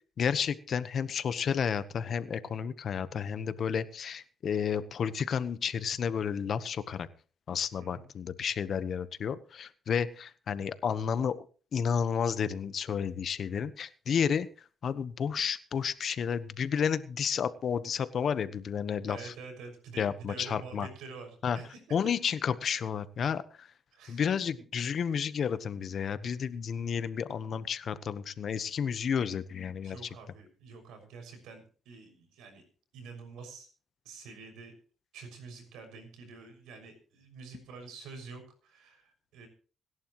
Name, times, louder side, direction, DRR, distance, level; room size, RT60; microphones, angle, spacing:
voice 1, 0.2-7.1 7.5-11.5 11.7-14.5 14.8-19.3 20.0-20.9 21.4-21.6 21.9-23.7 24.1-30.0, left 7 dB, 55° left, 14 dB, 1.1 m, -31 dB
voice 2, 19.1-22.1 23.9-24.7 29.8-32.6 32.9-33.7 34.0-34.7 35.1-39.5, right 4 dB, 90° right, 6 dB, 6.3 m, -47 dB
26.0 x 11.5 x 3.1 m, 0.39 s
cardioid pair, 90°, 0 cm